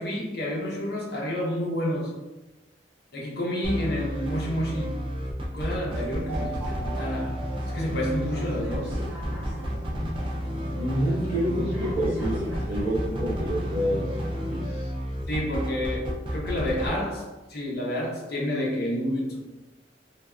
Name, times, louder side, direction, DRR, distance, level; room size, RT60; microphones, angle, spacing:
voice 1, 0.0-2.2 3.1-5.0 5.4-7.4 7.7-9.0 15.3-19.4, left 1 dB, 65° left, 0.7 m, -29 dB
sound 1, 3.6-16.9, equal, 30° right, 0.4 m, -31 dB
sound 2, 5.7-14.7, equal, 10° right, 0.8 m, -37 dB
voice 2, 10.7-14.1 14.3-14.9, equal, 35° left, 1.2 m, -28 dB
3.3 x 2.2 x 2.4 m
head